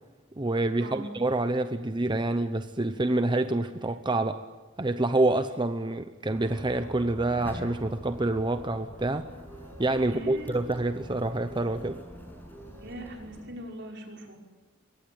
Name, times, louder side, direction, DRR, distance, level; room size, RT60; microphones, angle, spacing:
voice 1, 0.4-4.4 4.8-9.3 9.8-12.0, right 2 dB, 25° right, 9 dB, 0.8 m, -27 dB
sound 1, 6.3-13.4, equal, 10° left, 6.9 m, -44 dB
voice 2, 10.0-10.5 12.8-14.4, right 1 dB, 65° right, 1 dB, 5.8 m, -40 dB
25.5 x 23.0 x 8.7 m, 1.3 s
head